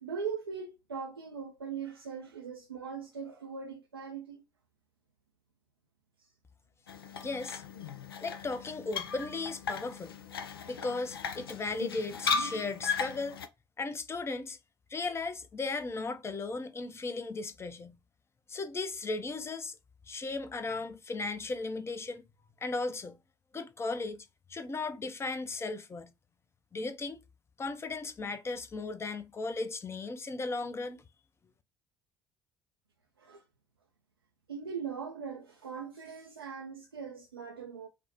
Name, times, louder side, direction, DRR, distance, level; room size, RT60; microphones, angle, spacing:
voice 1, 0.0-4.4 6.2-6.3 33.2-33.4 34.5-37.9, right 6 dB, 85° right, 0.4 m, -40 dB
sound 1, 6.9-13.5, left 5 dB, 80° left, 0.4 m, -36 dB
voice 2, 7.2-7.6 8.2-10.2 10.7-13.4 13.8-14.6 14.9-18.0 18.5-19.8 20.1-22.2 22.6-23.2 23.5-26.1 26.7-27.2 27.6-31.0, left 3 dB, 20° left, 0.6 m, -36 dB
5.1 x 2.1 x 2.9 m
figure-of-eight pair, 55°, 12 cm